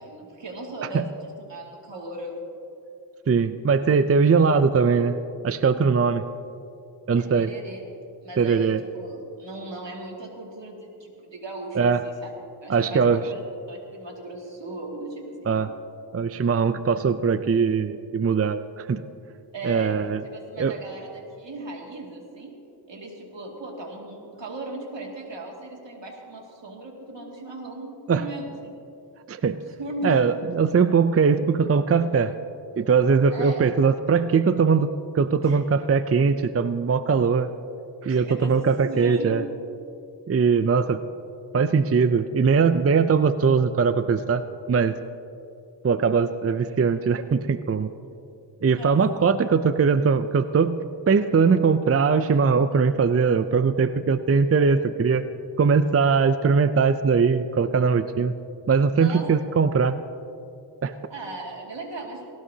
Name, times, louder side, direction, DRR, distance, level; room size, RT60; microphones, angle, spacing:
voice 1, 0.0-2.4 6.0-6.1 7.2-7.8 8.2-12.3 12.6-13.4 13.7-15.5 19.5-20.0 20.3-22.6 22.9-28.7 29.5-30.3 33.3-33.6 35.4-35.6 38.1-38.6 38.9-39.5 48.0-48.1 48.7-49.1 59.0-59.3 61.1-62.3, right 1 dB, 75° right, -1 dB, 2.5 m, -37 dB
voice 2, 3.3-5.2 5.4-6.2 7.1-7.5 8.4-8.8 11.7-12.0 12.7-13.2 15.5-15.7 16.1-19.0 19.6-20.2 20.6-20.8 28.1-28.3 29.3-29.6 30.0-32.3 32.8-34.9 35.1-37.5 38.0-39.4 40.3-41.0 41.5-44.4 44.7-45.0 45.8-47.9 48.6-50.8 51.1-55.2 55.6-58.3 58.7-60.0 60.8-60.9, right 5 dB, 35° right, 12 dB, 0.5 m, -21 dB
18.5 x 17.5 x 2.8 m, 2.6 s
cardioid pair, 50°, 44 cm